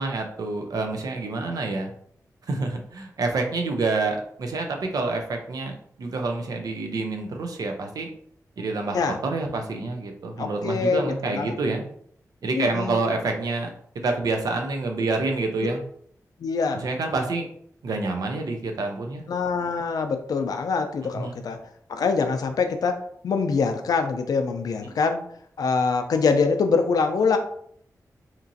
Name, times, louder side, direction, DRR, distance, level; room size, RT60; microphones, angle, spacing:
voice 1, 0.0-1.9 2.5-8.1 8.6-9.0 9.2-11.8 12.4-15.8 16.7-17.5 17.8-19.2 21.1-21.4 24.8-24.9, right 3 dB, 85° right, 3 dB, 0.5 m, -28 dB
voice 2, 10.4-11.5 12.5-13.1 16.4-16.8 19.3-21.6 21.9-23.0 23.2-25.2 25.6-27.4, left 4 dB, 90° left, 6 dB, 0.4 m, -24 dB
2.9 x 2.5 x 2.6 m, 0.64 s
wide cardioid pair, 155°, 6 cm